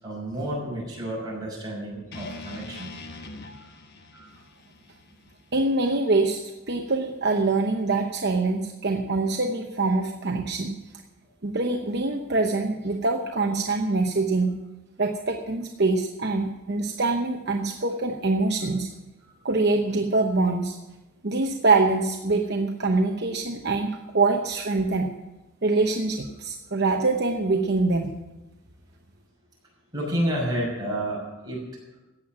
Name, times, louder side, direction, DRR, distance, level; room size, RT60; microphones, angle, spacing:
voice 1, 0.0-2.9 4.1-4.3 19.2-19.3 29.9-31.6, right 1 dB, 20° right, -4 dB, 6.3 m, -30 dB
sound 1, 2.1-6.3, left 3 dB, 50° left, 1.2 m, -43 dB
voice 2, 5.5-10.8 11.4-14.6 15.0-18.9 19.4-20.8 21.2-25.1 25.6-28.1, right 3 dB, 50° right, 2 dB, 0.9 m, -24 dB
15.0 x 9.0 x 7.5 m, 1.0 s
head